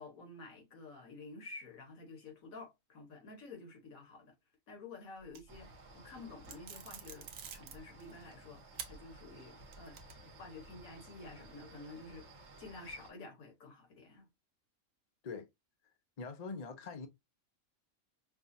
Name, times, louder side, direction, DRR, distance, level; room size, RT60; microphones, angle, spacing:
voice 1, 0.0-4.3 4.7-14.3, left 3 dB, 75° left, 1.7 m, -51 dB
sound 1, 5.2-5.8 6.4-8.3 8.8-8.9 9.4-10.4, right 8 dB, 75° right, 1.1 m, -48 dB
sound 2, 5.5-13.1, right 2 dB, 55° right, 1.3 m, -56 dB
voice 2, 16.2-17.1, left 4 dB, 45° left, 0.5 m, -43 dB
5.4 x 2.4 x 2.7 m
omnidirectional pair, 1.4 m